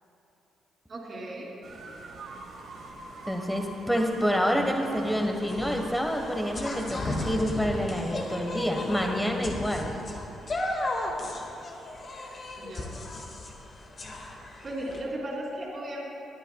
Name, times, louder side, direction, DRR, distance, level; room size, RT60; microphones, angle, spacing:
voice 1, 0.9-1.5 12.6-12.9 14.6-16.0, right 1 dB, 40° right, -5 dB, 2.9 m, -36 dB
sound 1, 1.6-9.5, right 3 dB, 60° right, 1.4 m, -44 dB
voice 2, 3.3-9.9, equal, 5° left, 2 dB, 1.1 m, -27 dB
sound 2, 4.9-15.0, left 2 dB, 45° left, 1.7 m, -35 dB
22.0 x 9.9 x 2.3 m, 2.9 s
cardioid pair, 90°, 0 cm